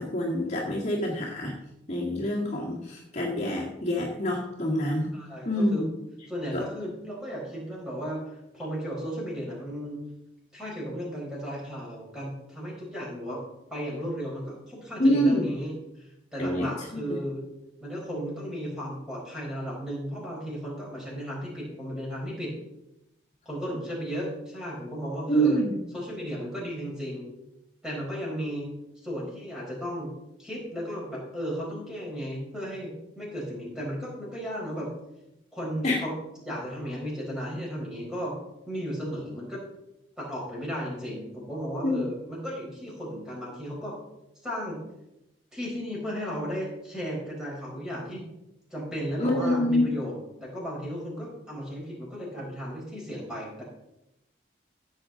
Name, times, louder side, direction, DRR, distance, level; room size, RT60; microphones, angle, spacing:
voice 1, 0.0-1.6 1.9-5.1 5.5-5.9 6.5-6.6 15.0-15.5 16.4-16.7 17.1-17.2 25.3-25.7 35.8-36.0 41.8-42.0 49.2-49.9, equal, 40° left, -4 dB, 2.0 m, -26 dB
voice 2, 5.1-5.8 6.3-10.1 10.5-13.4 13.7-17.4 17.8-22.5 23.4-25.6 25.9-27.3 27.8-30.1 30.4-34.9 35.5-38.3 38.7-39.6 40.2-43.9 44.4-44.8 45.5-48.2 48.7-53.6, equal, 5° right, -4 dB, 4.6 m, -35 dB
15.5 x 8.0 x 3.9 m, 0.89 s
head